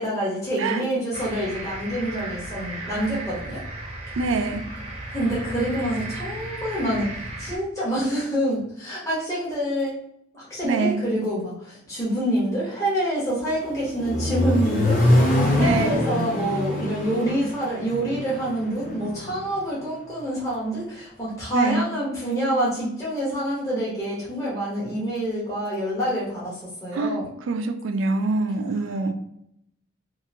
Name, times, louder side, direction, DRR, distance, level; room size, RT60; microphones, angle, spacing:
voice 1, 0.0-3.6 5.1-10.0 10.3-27.3, right 1 dB, 15° left, -8 dB, 0.9 m, -27 dB
sound 1, 1.1-7.6, right 1 dB, 30° right, 0.6 m, -35 dB
voice 2, 4.2-4.7 10.6-11.0 15.6-16.0 21.5-21.8 26.9-27.2 27.5-29.1, right 3 dB, 85° right, 7 dB, 0.4 m, -25 dB
Accelerating revving vroom, 13.5-19.5, left 1 dB, 40° left, 0.6 m, -24 dB
2.9 x 2.5 x 2.5 m, 0.77 s
head